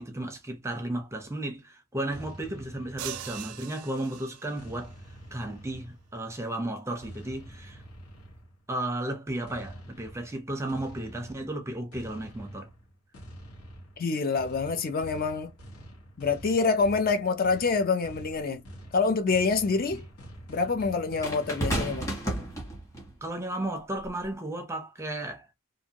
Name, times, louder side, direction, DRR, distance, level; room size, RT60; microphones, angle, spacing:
voice 1, 0.0-4.9 5.3-7.8 8.7-12.7 19.9-20.0 23.2-25.5, right 1 dB, 15° right, 0.6 m, -34 dB
sound 1, 2.1-3.9 4.6-6.3 7.0-8.7 9.5-21.7, right 1 dB, 90° left, 1.2 m, -47 dB
sound 2, 3.0-4.8, right 11 dB, 85° right, 0.4 m, -41 dB
voice 2, 14.0-15.5 16.2-18.6 18.9-20.0 20.5-22.1, left 4 dB, 40° left, 0.5 m, -26 dB
sound 3, 18.3-18.4 21.2-23.1 24.0-24.3, right 1 dB, 15° left, 1.2 m, -32 dB
2.6 x 2.5 x 2.8 m
head